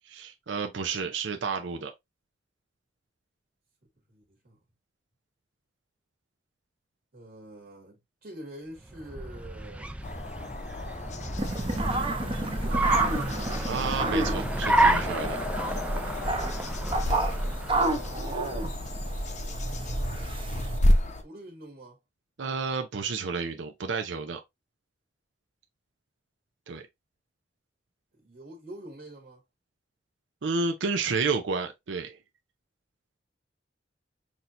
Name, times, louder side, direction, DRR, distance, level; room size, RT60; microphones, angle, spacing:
voice 1, 0.1-1.9 13.7-15.4 22.4-24.4 26.7-26.9 30.4-32.2, right 4 dB, 85° right, 0.6 m, -31 dB
voice 2, 4.1-4.6 7.1-9.9 12.3-13.1 21.0-22.0 28.1-29.4, right 1 dB, 60° right, 1.7 m, -45 dB
Car, 8.8-18.3, right 2 dB, 5° right, 0.3 m, -31 dB
sound 1, 10.0-21.2, left 1 dB, 40° left, 0.6 m, -32 dB
sound 2, 11.4-20.8, right 2 dB, 30° right, 0.8 m, -30 dB
6.0 x 2.8 x 2.5 m
head